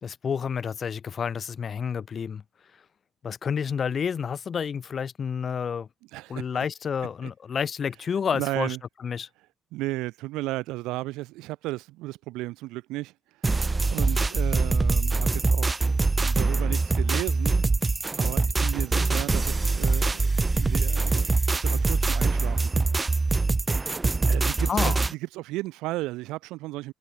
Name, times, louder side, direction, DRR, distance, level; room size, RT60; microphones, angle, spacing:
voice 1, 0.0-2.4 3.2-5.9 6.3-8.8 9.0-9.3 24.7-25.0, left 7 dB, 50° left, 2.3 m, -29 dB
voice 2, 6.1-6.6 7.2-7.3 8.3-8.8 9.7-13.1 13.9-15.8 16.1-17.7 18.1-22.8 24.3-26.9, right 19 dB, 85° right, 4.6 m, -34 dB
sound 1, 13.4-25.1, right 3 dB, 25° right, 0.3 m, -24 dB
supercardioid pair, 70°, 0 cm